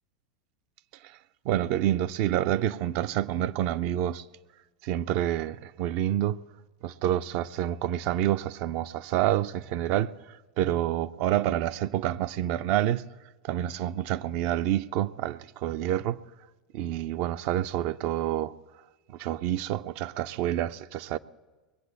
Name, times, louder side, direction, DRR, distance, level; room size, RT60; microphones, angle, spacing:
voice 1, 1.4-4.2 4.8-6.4 6.8-13.1 13.4-16.2 16.7-18.5 19.1-21.2, right 12 dB, 45° right, 0.4 m, -28 dB
21.0 x 7.9 x 7.9 m
figure-of-eight pair, 85°, 4 cm